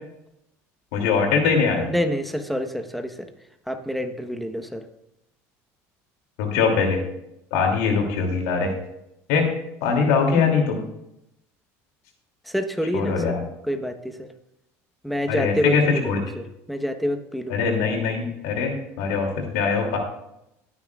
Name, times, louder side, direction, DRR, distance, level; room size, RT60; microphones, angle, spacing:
voice 1, 0.9-1.9 6.4-7.0 7.5-8.7 9.3-9.5 9.8-10.8 12.9-13.4 15.3-16.2 17.5-20.0, left 5 dB, 80° left, 2 dB, 2.8 m, -22 dB
voice 2, 1.9-3.3 3.7-4.9 12.5-13.4 13.7-14.3 15.0-17.6, equal, ahead, 7 dB, 1.1 m, -27 dB
17.5 x 9.6 x 2.4 m, 0.84 s
supercardioid pair, 105°, 7 cm